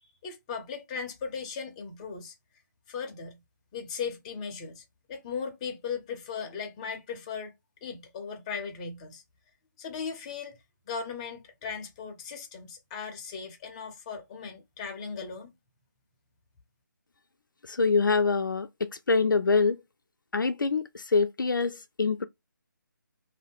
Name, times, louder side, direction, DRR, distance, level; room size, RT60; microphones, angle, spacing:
voice 1, 0.0-2.3 2.9-3.4 3.7-7.5 7.8-9.2 9.8-10.6 10.9-15.5, left 6 dB, 20° left, 0.6 m, -37 dB
voice 2, 17.7-19.8 20.3-22.2, left 4 dB, 80° left, 0.5 m, -25 dB
2.6 x 2.1 x 3.4 m
figure-of-eight pair, 150°, 11 cm